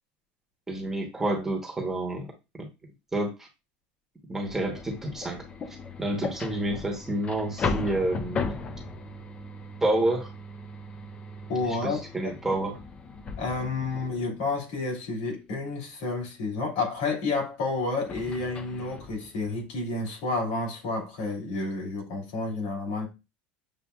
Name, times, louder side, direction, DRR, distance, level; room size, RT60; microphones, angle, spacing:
voice 1, 0.7-2.3 2.6-2.7 3.1-3.5 4.3-5.4 6.0-8.5 9.8-10.3 11.7-12.8, right 1 dB, 10° right, 0.9 m, -29 dB
sound 1, 4.4-14.6 18.0-19.7, left 4 dB, 25° left, 0.4 m, -37 dB
voice 2, 11.5-12.0 13.4-23.1, left 3 dB, 75° left, 2.6 m, -30 dB
7.0 x 2.5 x 2.3 m
cardioid pair, 145°, 5 cm